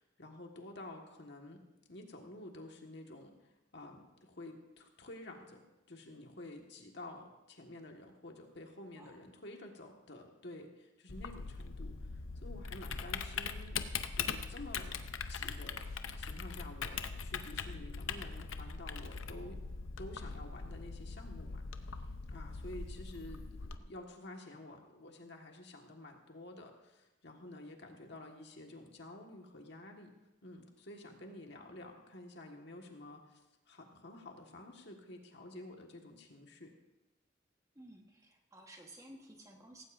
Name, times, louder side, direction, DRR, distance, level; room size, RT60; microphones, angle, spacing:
voice 1, 0.0-1.6 1.9-13.8 14.1-15.0 15.3-19.6 20.0-30.1 30.4-36.7, left 1 dB, 60° left, 2 dB, 1.7 m, -50 dB
Typing, 11.1-23.7, left 5 dB, 90° left, 0.8 m, -41 dB
voice 2, 37.7-39.8, right 1 dB, 15° right, 2 dB, 1.4 m, -55 dB
17.5 x 16.0 x 2.6 m, 0.99 s
head